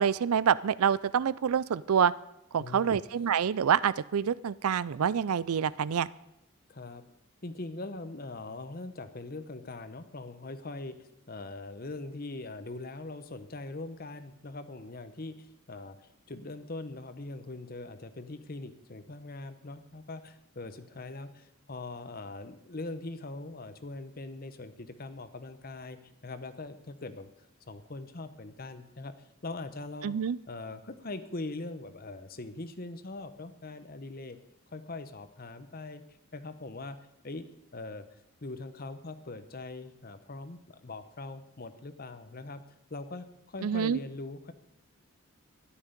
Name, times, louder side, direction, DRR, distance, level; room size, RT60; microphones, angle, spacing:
voice 1, 0.0-2.1 2.5-6.1 30.0-30.4 43.6-44.0, right 7 dB, 85° right, 19 dB, 0.4 m, -27 dB
voice 2, 2.6-3.0 6.7-7.0 7.4-27.3 27.7-30.2 30.5-34.4 34.7-36.0 36.3-37.0 37.2-38.1 38.4-42.6 42.9-44.5, left 2 dB, 45° left, 11 dB, 0.9 m, -42 dB
13.0 x 11.0 x 5.2 m, 0.87 s
head